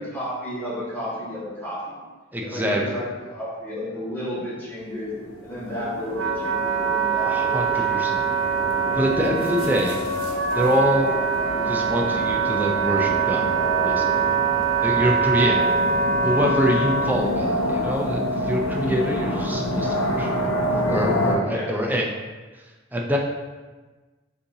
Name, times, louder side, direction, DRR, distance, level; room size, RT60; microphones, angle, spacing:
voice 1, 0.0-2.0 2.4-5.1 5.4-8.0 9.1-9.3 9.7-9.9 15.3-15.7 21.4-21.8, left 1 dB, 10° left, -10 dB, 1.4 m, -32 dB
voice 2, 2.3-2.8 7.3-8.2 8.9-10.0 10.5-11.1 11.7-13.4 13.8-14.1 14.8-15.7 16.1-20.5 20.9-22.1 22.9-23.2, equal, 10° right, 0 dB, 0.4 m, -25 dB
sound 1, 5.1-21.4, left 1 dB, 75° left, 0.8 m, -28 dB
Wind instrument woodwind instrument, 5.5-17.2, right 6 dB, 75° right, 0.5 m, -24 dB
6.7 x 2.7 x 2.7 m, 1.3 s
head